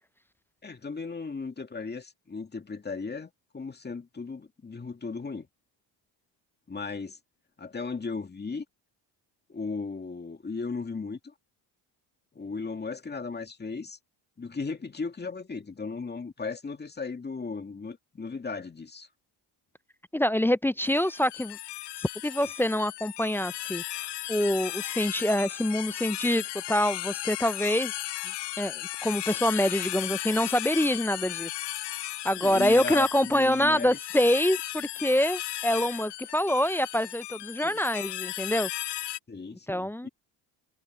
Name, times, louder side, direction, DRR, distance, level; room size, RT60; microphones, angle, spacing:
voice 1, 0.6-5.5 6.7-7.2 7.6-8.6 9.5-11.3 12.4-14.0 14.4-19.1 32.4-34.0 37.6-37.8 39.3-40.1, left 4 dB, 20° left, 2.2 m, -36 dB
voice 2, 20.1-21.6 22.2-27.9 28.6-31.5 32.2-38.7 39.7-40.1, left 1 dB, 5° left, 0.3 m, -26 dB
sound 1, 20.8-39.2, left 16 dB, 65° left, 0.8 m, -36 dB
cardioid pair, 95°, 45 cm